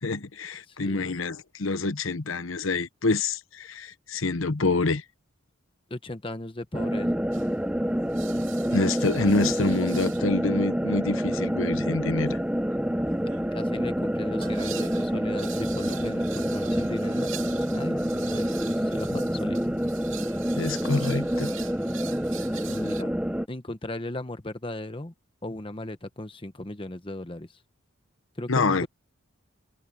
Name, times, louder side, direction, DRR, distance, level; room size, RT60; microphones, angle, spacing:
voice 1, 0.0-5.0 8.7-12.4 20.6-21.5 28.5-28.9, left 3 dB, 70° left, 1.0 m, -27 dB
voice 2, 0.7-1.2 5.9-7.1 13.5-19.7 22.7-23.1 23.5-25.1 25.4-27.6 28.4-28.9, left 1 dB, 25° left, 1.0 m, -36 dB
sound 1, 6.7-23.5, equal, 5° right, 0.8 m, -27 dB
sound 2, 7.3-7.6 8.1-10.4 11.3-23.0, right 11 dB, 70° right, 2.6 m, -44 dB
head